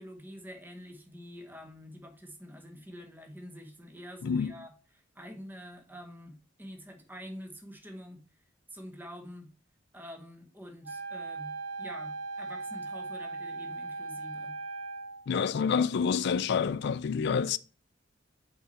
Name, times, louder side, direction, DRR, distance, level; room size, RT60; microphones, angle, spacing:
voice 1, 0.0-8.4 8.7-9.5 9.9-14.6, equal, 10° right, 0.9 m, -47 dB
Wind instrument woodwind instrument, 10.8-15.3, right 3 dB, 80° right, 0.7 m, -38 dB
voice 2, 15.3-17.6, left 6 dB, 55° left, 0.3 m, -28 dB
5.6 x 4.1 x 4.1 m
head